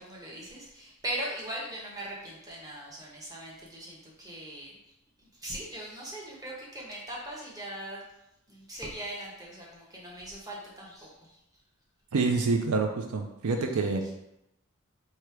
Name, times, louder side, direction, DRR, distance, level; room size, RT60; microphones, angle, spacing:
voice 1, 0.0-4.8 5.2-8.0 8.5-11.4 13.6-14.1, right 1 dB, 15° right, -4 dB, 0.9 m, -40 dB
voice 2, 12.1-14.0, right 4 dB, 80° right, 4 dB, 0.5 m, -27 dB
3.2 x 2.8 x 4.6 m, 0.87 s
head